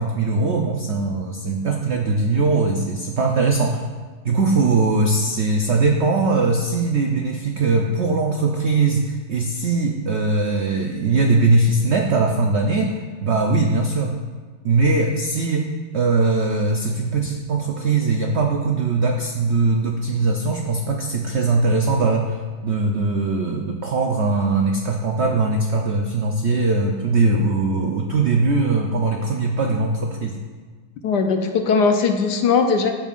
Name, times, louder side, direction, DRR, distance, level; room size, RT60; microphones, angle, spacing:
voice 1, 0.0-3.9 4.2-14.1 14.6-30.4, right 3 dB, 85° right, 2 dB, 0.6 m, -20 dB
voice 2, 31.0-32.9, left 5 dB, 75° left, 5 dB, 1.2 m, -19 dB
14.5 x 5.4 x 2.5 m, 1.5 s
omnidirectional pair, 1.9 m